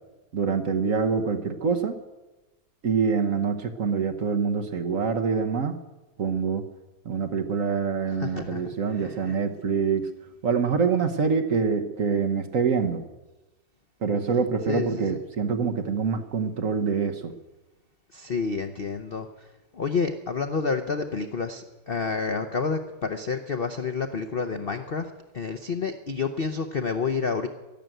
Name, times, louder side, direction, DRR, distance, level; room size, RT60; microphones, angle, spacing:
voice 1, 0.3-2.0 2.8-5.8 6.2-6.6 7.0-10.1 10.4-13.0 14.0-17.3, right 5 dB, 50° right, 6 dB, 1.2 m, -25 dB
voice 2, 8.2-9.4 14.7-15.2 18.1-19.5 19.7-25.1 25.3-27.5, left 5 dB, 50° left, 6 dB, 0.6 m, -29 dB
12.5 x 12.0 x 9.1 m, 1.1 s
omnidirectional pair, 2.1 m